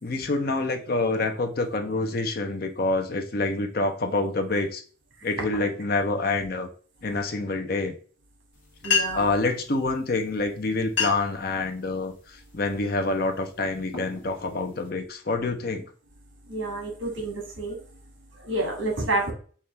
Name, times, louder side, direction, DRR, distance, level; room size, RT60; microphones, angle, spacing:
voice 1, 0.0-4.8 5.2-6.7 7.0-7.9 9.1-15.8, left 3 dB, 45° left, 5 dB, 0.6 m, -27 dB
sound 1, 8.5-8.6 8.8-9.4 10.3-10.4 10.8-11.4 11.9-12.2 12.8-13.1 13.6-14.9, left 6 dB, 65° left, 1.2 m, -29 dB
voice 2, 8.8-9.4 16.5-17.8 18.4-19.3, right 2 dB, 70° right, 1 dB, 1.7 m, -29 dB
5.6 x 2.4 x 3.3 m, 0.42 s
head